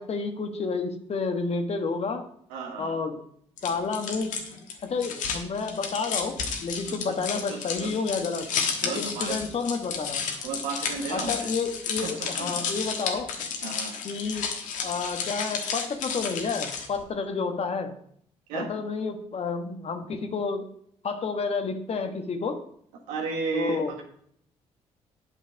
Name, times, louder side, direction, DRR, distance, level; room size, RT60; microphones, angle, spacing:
voice 1, 0.0-2.2 2.8-3.2 3.6-4.4 4.8-8.5 8.8-10.2 11.1-13.3 14.0-14.5 14.8-17.9 18.5-20.7 21.0-22.6 23.5-23.9, left 4 dB, 50° left, 6 dB, 1.3 m, -30 dB
voice 2, 2.5-3.0 6.9-7.2 7.5-7.9 8.8-9.4 10.4-11.5 12.0-12.5 13.6-13.9 18.5-18.7 23.1-24.0, right 5 dB, 85° right, 2 dB, 1.5 m, -34 dB
sound 1, 3.6-17.0, left 6 dB, 75° left, 1.4 m, -32 dB
8.3 x 5.7 x 5.1 m, 0.66 s
supercardioid pair, 55°, 13 cm